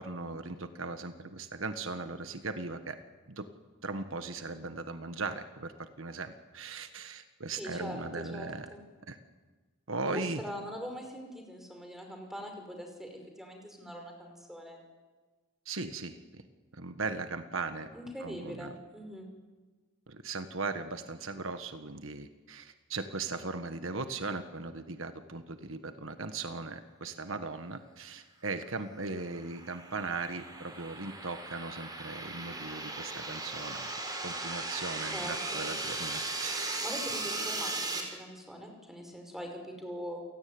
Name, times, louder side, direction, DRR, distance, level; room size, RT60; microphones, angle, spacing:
voice 1, 0.0-3.0 3.3-3.5 3.8-8.7 9.1-9.2 9.9-10.4 15.6-16.2 16.7-17.9 18.2-18.7 20.1-33.9 34.2-37.0 38.1-38.2, right 3 dB, 70° right, 9 dB, 1.5 m, -38 dB
voice 2, 7.6-8.8 10.1-14.8 17.9-19.3 35.1-35.6 36.8-40.2, equal, ahead, 3 dB, 5.4 m, -42 dB
sound 1, 29.0-38.0, right 2 dB, 20° right, 4.4 m, -37 dB
28.5 x 17.0 x 9.6 m, 1.3 s
head